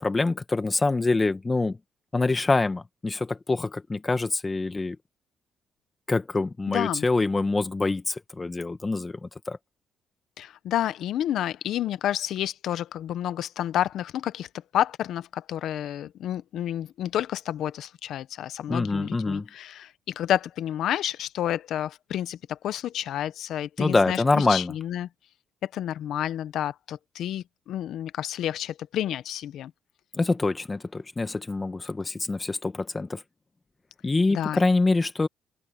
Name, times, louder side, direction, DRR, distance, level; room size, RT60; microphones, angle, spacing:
voice 1, 0.0-1.8 2.1-5.0 6.1-9.6 18.7-19.5 23.8-24.7 30.1-33.2 34.0-35.3, left 3 dB, 25° left, 1.4 m, -25 dB
voice 2, 6.7-7.1 10.4-14.5 14.7-25.1 25.6-29.7 34.3-34.6, left 11 dB, 75° left, 0.8 m, -30 dB
cardioid pair, 90°, 0 cm